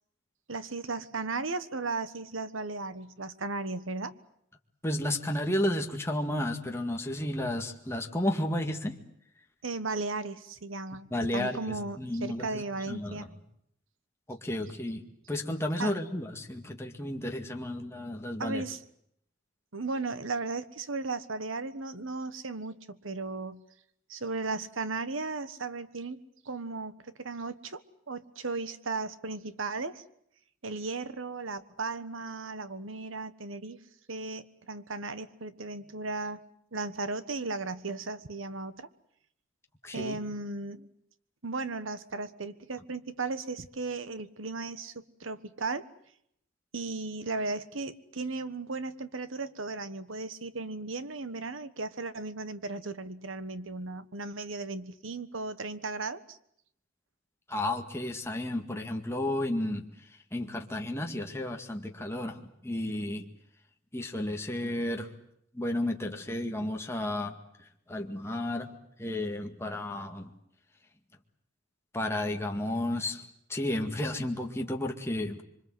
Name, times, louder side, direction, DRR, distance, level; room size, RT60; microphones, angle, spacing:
voice 1, 0.5-4.1 9.6-11.1 11.3-13.3 15.8-15.9 18.4-18.8 19.7-23.6 24.1-27.8 28.1-30.0 30.6-33.8 34.1-36.4 36.7-38.9 39.9-40.9 41.4-45.9 46.7-56.4, right 3 dB, 80° right, 13 dB, 1.4 m, -36 dB
voice 2, 4.8-9.0 11.1-13.3 14.3-18.6 39.8-40.2 57.5-63.3 63.9-65.1 65.5-70.3 71.9-73.2 73.5-75.4, left 1 dB, 15° left, 2 dB, 2.0 m, -32 dB
26.5 x 24.5 x 7.9 m, 0.73 s
head